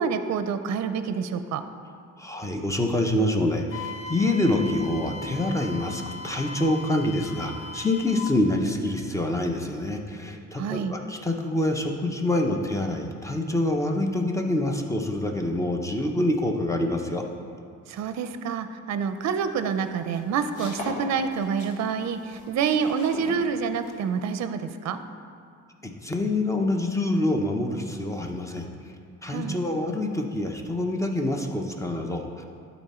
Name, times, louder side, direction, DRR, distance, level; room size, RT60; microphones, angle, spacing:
voice 1, 0.0-1.6 10.5-10.9 17.9-25.0 29.3-29.6, right 6 dB, 65° right, 10 dB, 0.6 m, -27 dB
voice 2, 2.2-17.2 25.8-28.7 29.2-32.4, left 1 dB, 10° left, 3 dB, 0.9 m, -26 dB
Wind instrument woodwind instrument, 3.7-8.4, left 3 dB, 50° left, 0.7 m, -39 dB
sound 1, 19.2-24.3, left 2 dB, 85° left, 1.7 m, -40 dB
11.5 x 4.2 x 4.3 m, 2.3 s
cardioid pair, 90°, 30 cm